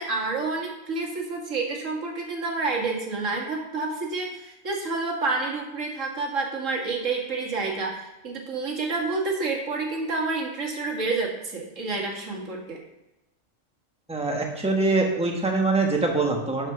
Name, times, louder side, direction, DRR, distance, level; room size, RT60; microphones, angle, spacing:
voice 1, 0.0-12.8, right 3 dB, 85° right, 0 dB, 2.0 m, -29 dB
voice 2, 14.1-16.7, right 3 dB, 5° right, 1 dB, 1.3 m, -24 dB
11.0 x 4.5 x 5.6 m, 0.92 s
omnidirectional pair, 1.3 m